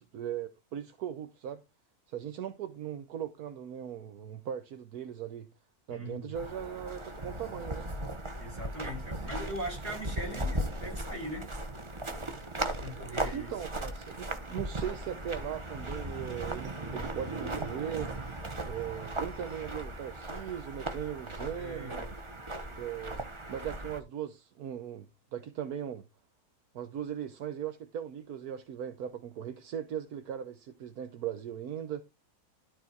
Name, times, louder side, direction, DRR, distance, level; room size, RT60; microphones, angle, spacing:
voice 1, 0.0-1.6 2.1-5.5 5.9-7.9 13.3-18.1 18.6-22.1 22.7-25.0 25.3-26.0 26.7-32.0, right 9 dB, 75° right, 1.4 m, -39 dB
voice 2, 5.9-6.5 8.4-11.5 12.6-13.5 21.6-22.1, right 1 dB, 45° right, 5.3 m, -40 dB
sound 1, 6.3-24.0, right 1 dB, 20° right, 1.1 m, -37 dB
12.5 x 4.2 x 4.6 m
omnidirectional pair, 1.6 m